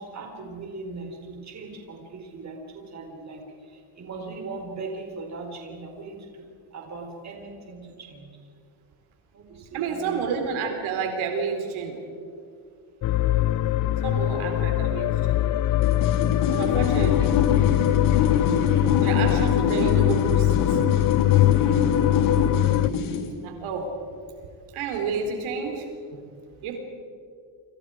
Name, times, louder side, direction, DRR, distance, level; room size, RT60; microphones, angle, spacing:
voice 1, 0.0-8.3 9.3-10.3 18.7-19.0 22.0-22.5, right 3 dB, 35° right, 2 dB, 4.5 m, -39 dB
voice 2, 9.7-12.0 14.0-15.4 16.5-17.4 19.0-20.8 23.4-23.9 24.7-26.2 26.6-26.8, right 5 dB, 75° right, 3 dB, 4.1 m, -30 dB
sound 1, 13.0-22.9, left 15 dB, 40° left, 0.5 m, -22 dB
sound 2, 15.8-23.3, left 5 dB, 75° left, 3.5 m, -25 dB
30.0 x 27.0 x 5.0 m, 2.3 s
cardioid pair, 150°, 49 cm